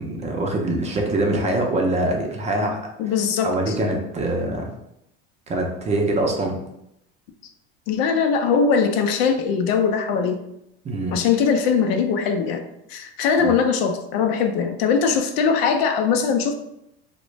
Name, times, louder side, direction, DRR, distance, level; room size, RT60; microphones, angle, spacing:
voice 1, 0.0-2.8 3.4-4.7 5.5-6.6 10.8-11.2 13.4-13.5, right 1 dB, 20° right, 1 dB, 0.5 m, -24 dB
voice 2, 3.0-3.8 7.9-10.4 11.1-12.6 12.9-16.5, left 6 dB, 80° left, 6 dB, 0.5 m, -21 dB
2.4 x 2.1 x 3.0 m, 0.81 s
supercardioid pair, 115°, 30 cm